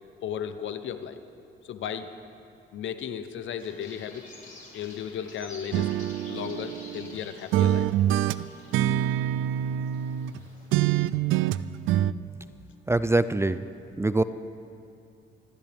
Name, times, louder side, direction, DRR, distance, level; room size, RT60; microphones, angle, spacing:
voice 1, 0.2-1.2 1.6-2.1 2.7-4.3 4.7-5.9 6.3-7.9, left 8 dB, 70° left, 10 dB, 1.0 m, -35 dB
sound 1, 3.6-10.7, left 2 dB, 45° left, 4.3 m, -50 dB
sound 2, 5.7-7.2 7.5-10.4 10.7-12.1, right 12 dB, 85° right, 0.4 m, -25 dB
voice 2, 12.9-13.6 14.0-14.2, right 2 dB, 15° right, 13 dB, 0.4 m, -23 dB
24.5 x 15.0 x 3.6 m, 2.7 s
cardioid pair, 90°, 20 cm